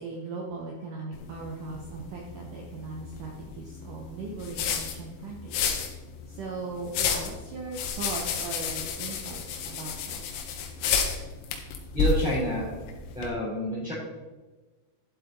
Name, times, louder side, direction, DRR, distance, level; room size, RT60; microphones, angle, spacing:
voice 1, 0.0-5.7 6.3-10.4, right 3 dB, 80° right, -1 dB, 1.8 m, -39 dB
sound 1, 1.1-13.3, left 5 dB, 80° left, 3.6 m, -32 dB
voice 2, 11.9-12.7 13.1-13.9, left 1 dB, ahead, -12 dB, 2.9 m, -28 dB
12.0 x 7.8 x 4.0 m, 1.2 s
omnidirectional pair, 5.5 m